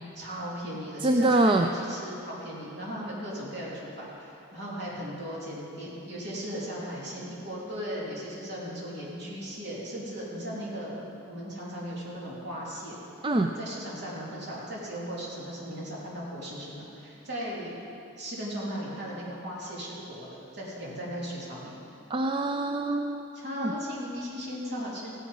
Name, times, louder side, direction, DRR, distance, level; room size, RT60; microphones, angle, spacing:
voice 1, 0.2-13.0 13.6-17.7 18.2-21.8 23.3-25.2, equal, 55° right, -6 dB, 3.4 m, -37 dB
voice 2, 1.0-1.7 13.2-13.5 22.1-23.3 23.6-23.7, right 2 dB, 25° right, 4 dB, 0.4 m, -24 dB
15.0 x 10.0 x 5.4 m, 2.7 s
head